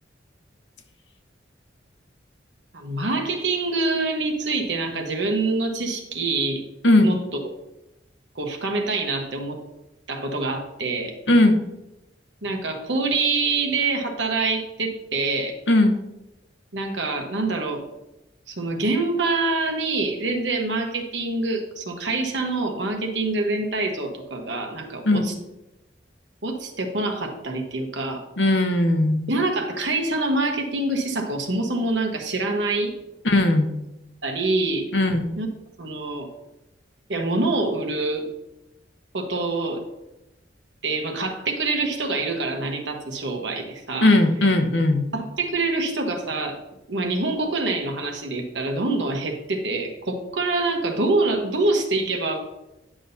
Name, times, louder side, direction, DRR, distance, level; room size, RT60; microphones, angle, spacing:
voice 1, 2.7-6.6 7.0-7.2 8.3-9.6 10.1-11.1 12.4-15.5 16.7-17.9 18.5-25.3 26.4-28.2 29.3-32.9 34.2-34.8 35.4-35.5 35.8-36.3 37.1-38.2 39.1-39.8 40.8-44.1 45.1-46.6 46.9-52.4, right 3 dB, 75° right, 3 dB, 1.2 m, -25 dB
voice 2, 11.3-11.6 15.7-16.0 25.0-25.3 28.4-29.3 33.2-33.7 34.9-35.3 44.0-45.1, left 1 dB, 75° left, 6 dB, 0.9 m, -18 dB
10.0 x 6.2 x 2.7 m, 0.93 s
head